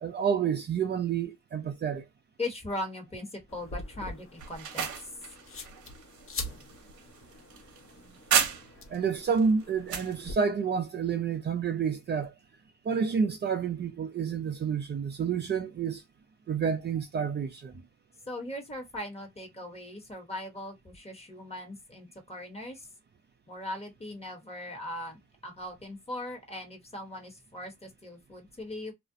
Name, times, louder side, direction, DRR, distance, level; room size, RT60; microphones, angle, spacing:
voice 1, 0.0-2.0 8.9-12.3 12.8-16.0 16.5-17.7, right 6 dB, 35° right, 0.5 m, -29 dB
voice 2, 2.4-4.9 18.3-22.9 23.5-28.9, left 1 dB, 20° left, 1.2 m, -39 dB
sound 1, 3.5-10.3, left 2 dB, 45° left, 1.0 m, -44 dB
sound 2, 4.4-9.0 9.4-10.2, right 7 dB, 70° right, 0.7 m, -32 dB
2.5 x 2.1 x 2.5 m
cardioid pair, 90°, 30 cm